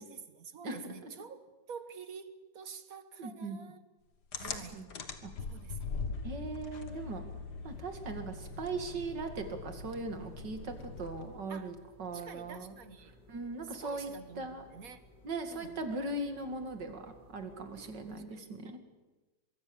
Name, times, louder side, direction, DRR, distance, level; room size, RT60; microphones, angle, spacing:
voice 1, 0.0-3.8 4.3-4.9 5.5-6.0 11.5-11.7 12.1-13.1 13.8-15.0 15.5-15.8 16.9-17.1 17.8-18.8, right 6 dB, 55° right, 1.7 m, -49 dB
voice 2, 0.6-1.1 3.2-3.6 4.7-4.9 5.2-5.3 6.2-7.2 7.6-12.7 13.3-14.1 14.4-14.6 15.2-18.8, right 3 dB, 70° right, 3.0 m, -39 dB
sound 1, 4.3-11.5, left 4 dB, 65° left, 2.2 m, -42 dB
sound 2, 7.7-18.3, left 2 dB, 25° left, 3.7 m, -60 dB
24.0 x 22.5 x 7.1 m
omnidirectional pair, 1.9 m